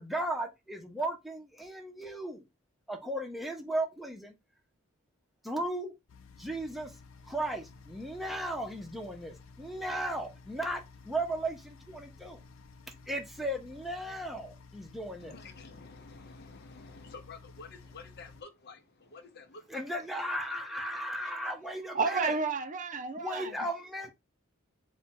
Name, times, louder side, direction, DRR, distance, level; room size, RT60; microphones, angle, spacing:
voice 1, 0.0-2.4 2.9-4.3 5.4-5.9 6.4-6.9 7.2-12.4 13.1-15.3 19.7-22.3 23.2-24.1, right 1 dB, ahead, 0.8 m, -36 dB
sound 1, 6.1-18.4, left 4 dB, 80° left, 0.5 m, -54 dB
voice 2, 15.2-20.1, left 4 dB, 55° left, 0.8 m, -50 dB
voice 3, 21.9-23.6, right 4 dB, 40° right, 0.6 m, -31 dB
4.3 x 2.3 x 4.3 m
head